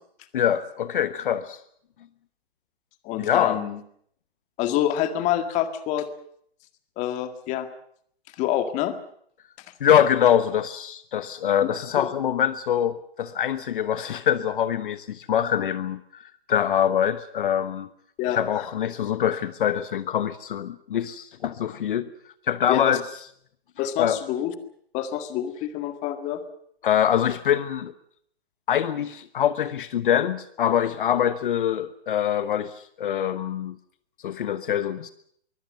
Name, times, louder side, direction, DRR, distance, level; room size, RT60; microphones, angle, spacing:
voice 1, 0.3-1.6 3.2-3.6 9.8-17.9 18.3-22.1 22.5-23.1 24.0-24.2 26.8-27.9 28.7-33.7 34.2-35.1, left 9 dB, 55° left, 13 dB, 1.1 m, -24 dB
voice 2, 3.0-3.8 4.6-6.1 7.0-7.7 8.4-9.0 18.2-18.7 22.7-23.0 23.8-24.5 24.9-26.4, left 11 dB, 20° left, 9 dB, 1.9 m, -27 dB
23.5 x 16.5 x 9.0 m, 0.66 s
hypercardioid pair, 145°, 31 cm